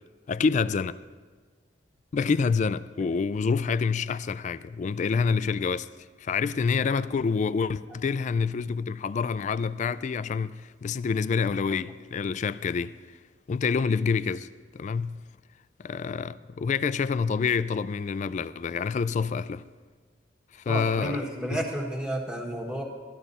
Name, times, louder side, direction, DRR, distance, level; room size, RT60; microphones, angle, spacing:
voice 1, 0.3-1.0 2.1-5.9 6.2-13.0 13.5-15.2 15.8-19.6 20.5-21.2 21.5-21.6, left 5 dB, 40° left, 0.3 m, -27 dB
voice 2, 20.7-22.8, right 1 dB, 5° right, 1.5 m, -31 dB
13.0 x 12.0 x 4.1 m
head